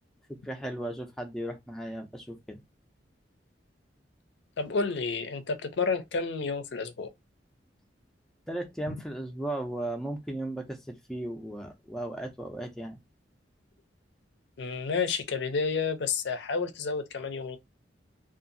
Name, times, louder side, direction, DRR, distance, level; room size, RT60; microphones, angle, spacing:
voice 1, 0.3-2.6 8.5-13.0, right 1 dB, 5° left, 0.4 m, -36 dB
voice 2, 4.6-7.1 8.9-9.0 14.6-17.6, left 4 dB, 65° left, 0.5 m, -30 dB
2.6 x 2.3 x 2.5 m
head